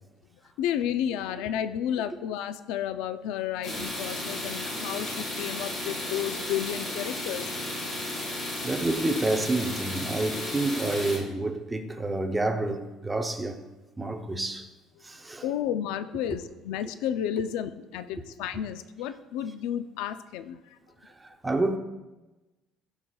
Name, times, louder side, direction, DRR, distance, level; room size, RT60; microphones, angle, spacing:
voice 1, 0.6-7.5 15.4-20.8, left 10 dB, 80° left, 0.4 m, -32 dB
sound 1, 3.6-11.2, left 1 dB, 45° left, 3.0 m, -34 dB
voice 2, 8.6-13.6 14.0-14.7 15.0-15.5 21.0-21.8, right 2 dB, 10° right, 0.6 m, -29 dB
16.5 x 5.7 x 2.3 m
cardioid pair, 165°, 0 cm